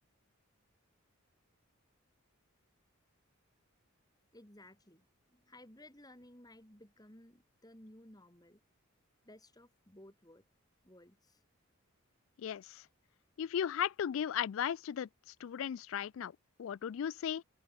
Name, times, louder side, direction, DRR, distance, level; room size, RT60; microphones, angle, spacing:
voice 1, 4.3-8.6 9.2-10.4 10.8-11.4, left 1 dB, 15° left, 4.4 m, -57 dB
voice 2, 12.4-12.9 13.4-16.3 16.6-17.4, left 9 dB, 65° left, 0.3 m, -36 dB
open air
head